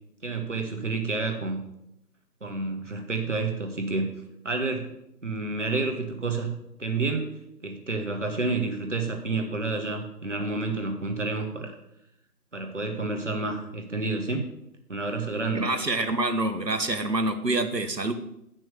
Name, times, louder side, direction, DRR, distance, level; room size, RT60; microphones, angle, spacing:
voice 1, 0.2-1.6 2.4-4.1 4.4-4.9 5.2-11.7 12.5-14.5 14.9-15.7, right 3 dB, 45° right, 4 dB, 1.7 m, -29 dB
voice 2, 15.5-18.1, right 2 dB, 80° right, 8 dB, 1.5 m, -26 dB
9.2 x 6.1 x 6.9 m, 0.80 s
figure-of-eight pair, 165°, 49 cm